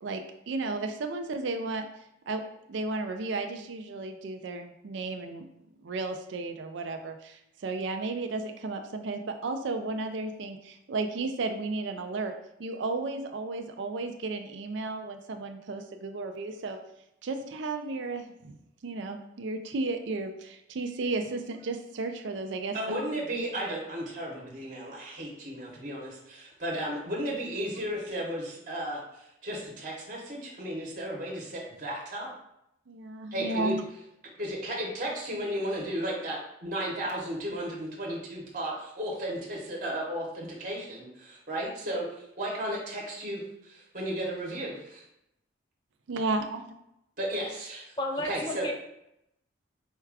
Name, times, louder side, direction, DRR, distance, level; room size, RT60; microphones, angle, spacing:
voice 1, 0.0-1.9 2.3-2.4 2.7-5.5 5.8-12.3 12.6-16.8 17.2-18.6 18.8-22.8 32.9-33.8 46.1-46.7, right 3 dB, 70° right, 6 dB, 0.4 m, -33 dB
voice 2, 22.7-32.3 33.3-33.8 34.4-45.0 47.2-47.9 48.2-48.7, right 1 dB, 40° right, -3 dB, 0.9 m, -34 dB
voice 3, 48.0-48.7, left 1 dB, 25° left, 2 dB, 0.4 m, -32 dB
4.4 x 2.3 x 4.6 m, 0.81 s
head